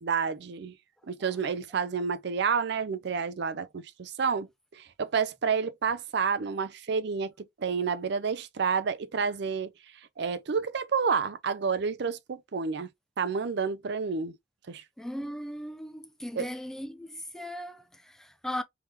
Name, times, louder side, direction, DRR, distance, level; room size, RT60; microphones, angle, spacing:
voice 1, 0.0-0.7 1.0-9.7 10.2-12.9 13.2-14.4 14.7-14.8 16.4-16.5, right 5 dB, 60° right, 0.5 m, -29 dB
voice 2, 15.0-18.6, equal, 5° left, 0.4 m, -38 dB
3.4 x 3.2 x 2.9 m
head